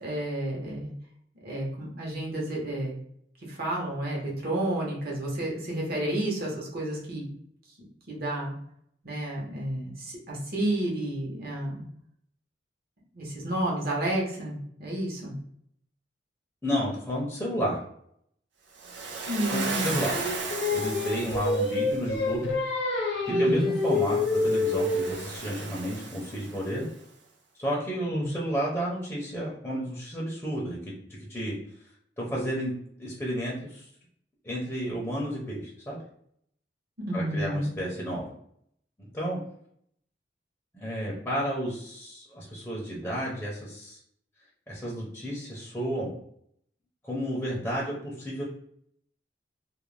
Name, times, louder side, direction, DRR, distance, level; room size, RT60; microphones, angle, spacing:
voice 1, 0.0-0.9 1.4-2.9 3.5-7.3 8.1-8.5 9.0-11.8 13.1-15.3 19.3-20.0 23.3-23.7 28.1-28.3 37.1-37.7, right 1 dB, 55° right, -3 dB, 0.9 m, -31 dB
voice 2, 16.6-17.8 19.5-20.2 20.7-22.5 23.4-26.9 27.6-30.9 31.2-31.6 32.2-32.7 33.0-33.9 34.4-36.0 37.1-38.3 39.0-39.4 40.7-44.0 44.7-46.1 47.0-48.4, equal, 10° left, -5 dB, 0.5 m, -31 dB
Waves surf, 18.8-22.0 23.8-26.8, right 4 dB, 80° right, 0.5 m, -36 dB
Singing, 20.1-25.3, left 3 dB, 70° left, 0.6 m, -27 dB
2.5 x 2.0 x 3.1 m, 0.69 s
head